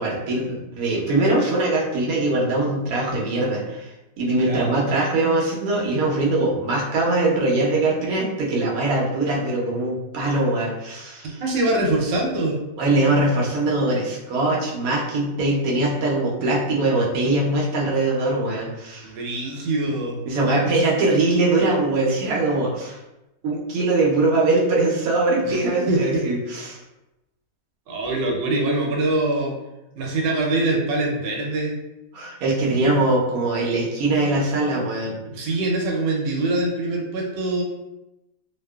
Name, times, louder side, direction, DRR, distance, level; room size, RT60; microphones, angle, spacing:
voice 1, 0.0-3.9 4.2-11.4 12.8-19.1 20.3-23.0 23.4-26.8 32.1-35.2, right 2 dB, 65° right, -3 dB, 1.0 m, -22 dB
voice 2, 4.4-4.8 11.4-12.6 19.0-20.2 25.4-26.2 27.9-29.5 30.0-31.8 35.3-37.6, right 2 dB, 85° right, -1 dB, 1.3 m, -24 dB
2.8 x 2.3 x 2.2 m, 0.97 s
omnidirectional pair, 1.9 m